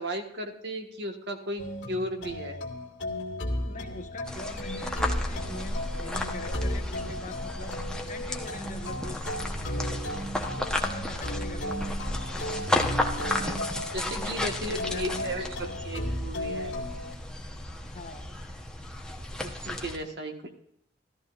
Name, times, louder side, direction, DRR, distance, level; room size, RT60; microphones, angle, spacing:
voice 1, 0.0-2.6 11.1-11.2 13.2-13.6 13.9-16.7 19.4-20.5, right 1 dB, 60° right, 4 dB, 1.6 m, -35 dB
sound 1, 1.6-17.1, left 1 dB, 70° left, 2.3 m, -35 dB
voice 2, 3.6-7.8 8.1-9.9 10.4-12.0 14.1-14.3 14.7-15.4 17.8-18.4, left 2 dB, 45° left, 4 dB, 1.4 m, -43 dB
sound 2, 4.2-20.0, left 1 dB, 5° left, 1.1 m, -33 dB
14.5 x 13.5 x 2.6 m, 0.72 s
head